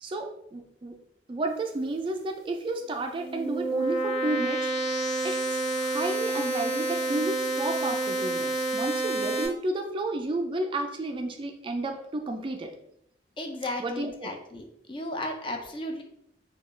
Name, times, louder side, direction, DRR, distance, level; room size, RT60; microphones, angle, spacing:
voice 1, 0.0-1.0 1.3-4.7 5.2-5.4 5.8-12.7 13.8-14.3, right 2 dB, 30° right, 4 dB, 0.3 m, -32 dB
sound 1, 3.0-9.5, right 2 dB, 75° left, 1.1 m, -29 dB
voice 2, 13.4-16.0, left 1 dB, 30° left, 3 dB, 0.5 m, -35 dB
3.7 x 2.3 x 3.1 m, 0.75 s
head